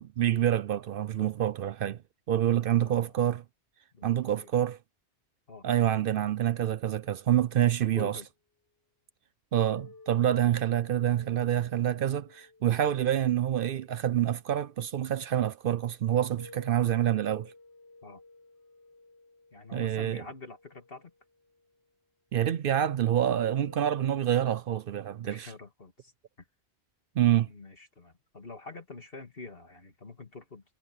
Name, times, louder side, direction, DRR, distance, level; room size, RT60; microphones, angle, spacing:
voice 1, 0.0-2.0 2.3-3.4 4.0-4.8 5.6-8.2 9.5-17.5 19.7-20.2 22.3-25.5 27.2-27.5, right 11 dB, 60° right, 0.7 m, -27 dB
voice 2, 2.5-3.1 3.9-4.5 5.5-5.7 7.9-8.3 18.0-18.2 19.5-21.1 25.2-26.1 26.4-26.5 27.5-30.6, left 3 dB, 55° left, 2.6 m, -46 dB
sound 1, 9.5-15.0 16.4-21.8 23.2-24.5, left 2 dB, 80° left, 4.3 m, -54 dB
omnidirectional pair, 1.2 m